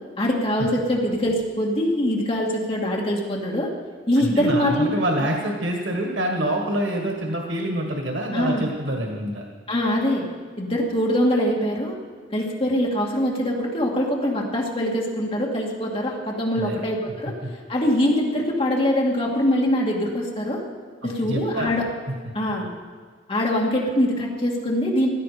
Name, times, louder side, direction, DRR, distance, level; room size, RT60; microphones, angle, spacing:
voice 1, 0.2-3.7 4.1-4.9 5.2-5.3 8.3-8.6 9.7-10.3 10.6-12.0 12.3-17.3 17.7-20.6 21.0-21.9 22.3-22.7 23.3-25.1, left 1 dB, 30° left, -2 dB, 2.4 m, -23 dB
voice 2, 4.2-9.5 16.6-16.8 21.3-21.7, right 1 dB, 90° right, 1 dB, 1.8 m, -26 dB
16.5 x 11.5 x 5.1 m, 1.5 s
head